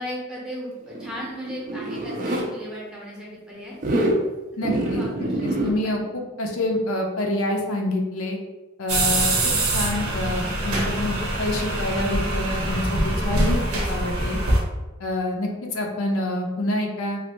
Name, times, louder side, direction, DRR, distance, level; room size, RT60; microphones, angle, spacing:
voice 1, 0.0-3.8 4.6-5.3 5.6-5.9 13.1-13.8 14.1-14.3, equal, 5° right, -6 dB, 0.7 m, -36 dB
Zipper (clothing), 0.9-2.5 3.7-4.2 4.6-5.7, right 1 dB, 40° right, 0.4 m, -25 dB
voice 2, 4.6-8.4 8.8-14.4 15.0-17.2, left 1 dB, 75° left, 2 dB, 0.5 m, -27 dB
sound 1, 8.9-14.6, right 1 dB, 85° right, 0.8 m, -24 dB
3.1 x 2.4 x 3.0 m, 1.2 s
head